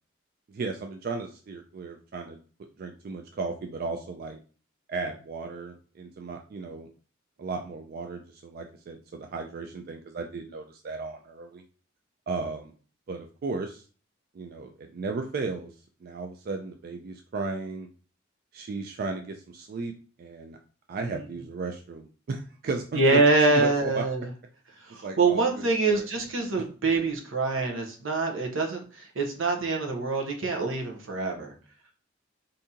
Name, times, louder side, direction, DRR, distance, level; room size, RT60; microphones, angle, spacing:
voice 1, 0.5-2.4 2.8-4.4 4.9-6.9 7.4-11.6 12.3-12.7 13.1-13.8 14.3-15.7 16.0-17.9 18.5-19.9 20.2-20.6 20.9-23.2 23.5-24.0 24.9-26.1, right 3 dB, 50° right, 4 dB, 0.3 m, -35 dB
voice 2, 22.9-24.3 24.8-31.5, right 3 dB, 80° right, 2 dB, 0.8 m, -25 dB
2.7 x 2.6 x 3.6 m, 0.39 s
head